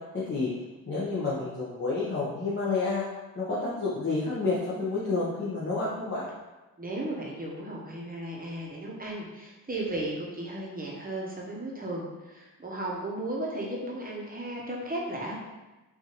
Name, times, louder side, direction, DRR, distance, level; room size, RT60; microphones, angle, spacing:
voice 1, 0.9-3.0 3.3-6.3, left 3 dB, 30° left, -7 dB, 1.0 m, -29 dB
voice 2, 6.8-15.3, right 1 dB, 25° right, -3 dB, 1.0 m, -35 dB
4.6 x 2.7 x 3.0 m, 1.1 s
cardioid pair, 70°, 37 cm